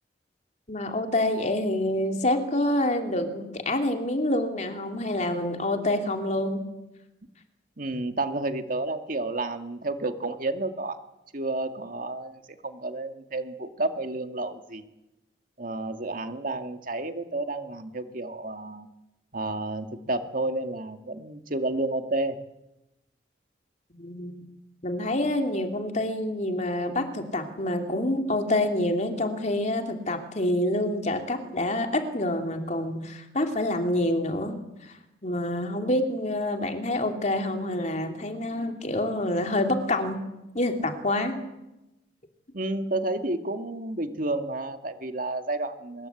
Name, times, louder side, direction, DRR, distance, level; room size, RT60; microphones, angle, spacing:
voice 1, 0.7-6.6 24.0-24.3 24.8-34.6 34.8-34.9 35.2-40.2 40.5-41.4, left 1 dB, 40° left, 4 dB, 3.0 m, -27 dB
voice 2, 7.8-11.0 11.3-14.8 15.6-18.9 19.3-22.4 42.5-46.1, right 2 dB, 45° right, 7 dB, 2.1 m, -31 dB
25.0 x 21.5 x 8.5 m, 0.96 s
head